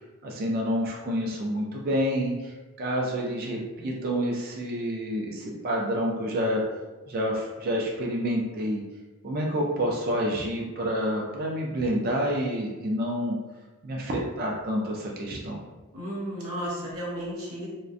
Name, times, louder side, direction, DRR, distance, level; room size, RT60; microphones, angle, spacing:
voice 1, 0.2-6.6 7.1-8.8 9.2-13.4 13.8-15.6, equal, 45° right, -2 dB, 0.3 m, -28 dB
voice 2, 15.9-17.7, equal, 80° right, -4 dB, 0.8 m, -33 dB
2.4 x 2.1 x 2.5 m, 1.2 s
head